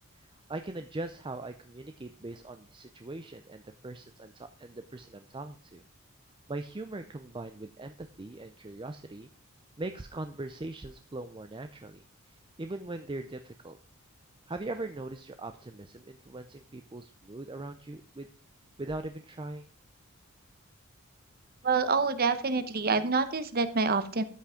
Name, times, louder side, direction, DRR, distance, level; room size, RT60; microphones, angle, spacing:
voice 1, 0.2-5.8 6.5-9.3 9.8-13.8 14.5-18.3 18.8-19.7, right 2 dB, 20° right, 8 dB, 0.5 m, -40 dB
voice 2, 21.6-24.2, right 4 dB, 45° right, 12 dB, 0.9 m, -27 dB
13.0 x 5.9 x 5.0 m, 0.41 s
head